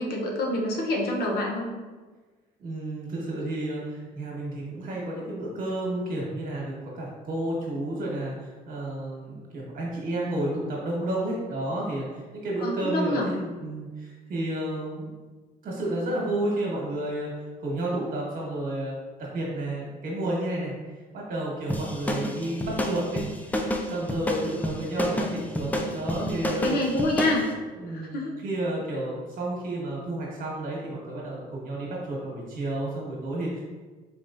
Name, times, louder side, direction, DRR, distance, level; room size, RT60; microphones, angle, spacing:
voice 1, 0.0-1.7 12.6-13.3 22.2-22.3 25.0-25.1 26.6-27.5 27.9-28.3, left 1 dB, 70° left, -1 dB, 0.8 m, -27 dB
voice 2, 2.6-8.3 8.7-15.1 15.6-18.9 19.2-20.7 21.1-26.7 27.8-33.6, right 1 dB, 55° right, -3 dB, 1.4 m, -31 dB
sound 1, 21.7-27.4, left 1 dB, 10° left, 0.4 m, -29 dB
4.2 x 3.4 x 2.6 m, 1.3 s
cardioid pair, 110°, 17 cm